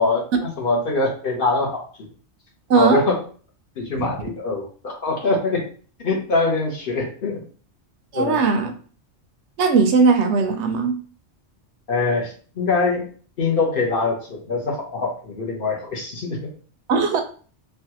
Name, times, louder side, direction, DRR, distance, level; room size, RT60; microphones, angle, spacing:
voice 1, 0.0-2.1 2.7-3.2 3.8-5.6 6.0-7.4 8.1-8.4 11.9-13.1 13.4-16.5, left 3 dB, 55° left, -1 dB, 0.9 m, -23 dB
voice 2, 2.7-3.0 4.0-4.1 8.1-8.7 9.6-11.0 16.9-17.2, right 5 dB, 75° right, 5 dB, 0.8 m, -18 dB
3.2 x 2.3 x 2.8 m, 0.41 s
omnidirectional pair, 1.2 m